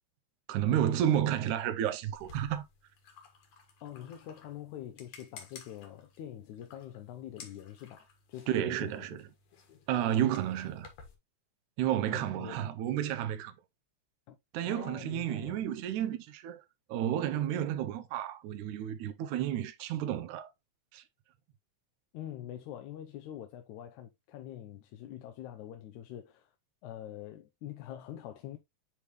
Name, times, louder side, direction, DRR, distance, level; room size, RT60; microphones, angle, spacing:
voice 1, 0.5-2.6 8.5-9.2 9.9-10.9 11.8-13.5 14.5-16.6 16.9-20.5 20.9-21.0, right 11 dB, 85° right, 2.1 m, -31 dB
sound 1, 2.1-11.1, left 6 dB, 60° left, 2.6 m, -55 dB
voice 2, 3.8-9.2 12.1-12.7 14.3-14.4 14.6-15.6 22.1-26.5 26.8-28.6, left 11 dB, 80° left, 2.1 m, -45 dB
10.0 x 3.5 x 3.0 m
omnidirectional pair, 3.5 m